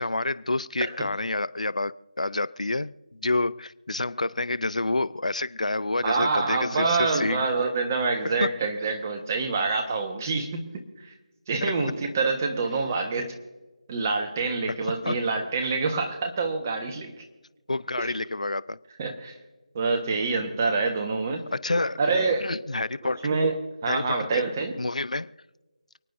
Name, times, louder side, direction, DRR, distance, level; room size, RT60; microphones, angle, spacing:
voice 1, 0.0-7.4 8.2-8.5 11.6-11.7 14.9-15.2 17.7-18.8 21.5-22.0 22.4-23.3 23.9-24.4 24.8-25.3, left 2 dB, 85° left, 0.6 m, -28 dB
voice 2, 6.0-10.8 11.5-13.3 13.9-17.1 18.0-18.1 19.0-19.3 19.7-21.4 22.0-22.5 23.0-23.5 23.8-24.8, right 4 dB, 25° right, 1.3 m, -26 dB
29.0 x 9.9 x 2.7 m
figure-of-eight pair, 165°, 4 cm